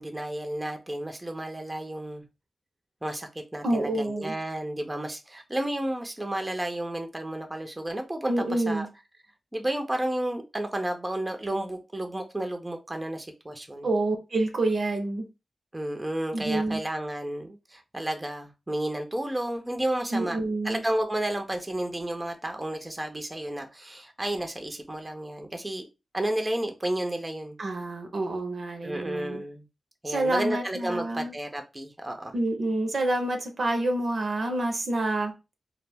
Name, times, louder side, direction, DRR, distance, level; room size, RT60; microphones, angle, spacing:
voice 1, 0.0-2.2 3.0-8.9 9.5-13.9 15.7-20.4 20.6-25.9 26.1-27.6 28.8-29.6 30.0-32.3, right 1 dB, 20° right, 0.5 m, -32 dB
voice 2, 3.6-4.4 8.3-8.9 13.8-15.2 16.3-16.8 20.1-20.8 27.6-29.4 30.1-31.3 32.3-35.3, right 2 dB, 65° right, 0.6 m, -28 dB
2.1 x 2.1 x 3.3 m
cardioid pair, 40°, 0 cm